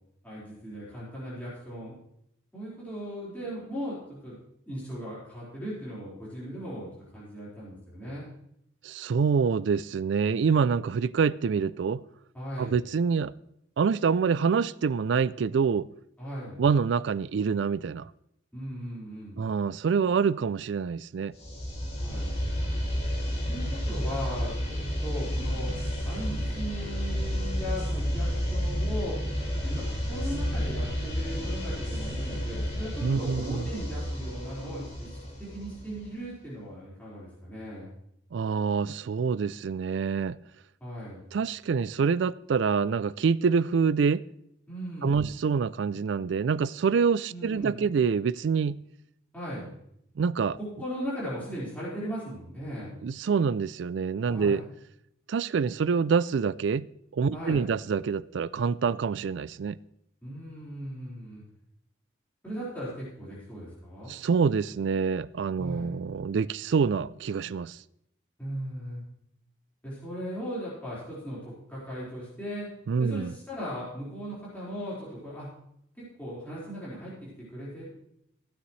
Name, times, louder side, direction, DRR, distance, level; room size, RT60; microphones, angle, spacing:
voice 1, 0.2-1.9 2.5-4.4 4.7-8.2 12.3-12.8 16.2-16.6 18.5-19.5 22.0-22.3 23.5-24.8 25.0-25.7 26.0-29.2 29.5-35.1 35.4-37.9 40.8-41.2 44.7-45.3 47.3-47.8 49.3-49.7 50.6-52.9 54.3-54.6 57.3-57.6 60.2-61.4 62.4-64.1 65.6-65.9 68.4-69.0 69.8-72.7 73.0-75.5 76.0-77.9, equal, 10° left, 4.5 m, -38 dB
voice 2, 8.8-12.0 12.6-13.3 13.8-15.9 16.6-18.1 19.4-21.4 33.0-33.6 38.3-40.4 41.3-44.2 45.0-48.8 50.2-50.6 53.0-54.6 55.3-56.9 57.1-59.8 64.1-67.8 72.9-73.3, right 5 dB, 70° right, 0.3 m, -26 dB
sound 1, 21.4-36.2, equal, 30° left, 3.3 m, -31 dB
15.5 x 9.5 x 3.2 m
head